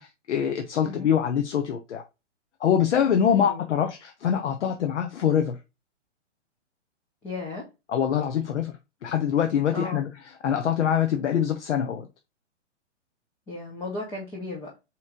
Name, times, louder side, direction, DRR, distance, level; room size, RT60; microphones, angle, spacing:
voice 1, 0.0-2.0 2.6-5.6 7.9-8.8 9.0-10.1 10.4-12.1, left 8 dB, 70° left, 0.7 m, -24 dB
voice 2, 3.3-3.7 7.2-7.7 9.7-10.0 13.5-14.7, left 3 dB, 10° left, 0.4 m, -35 dB
4.1 x 3.0 x 3.5 m
hypercardioid pair, 130°, 37 cm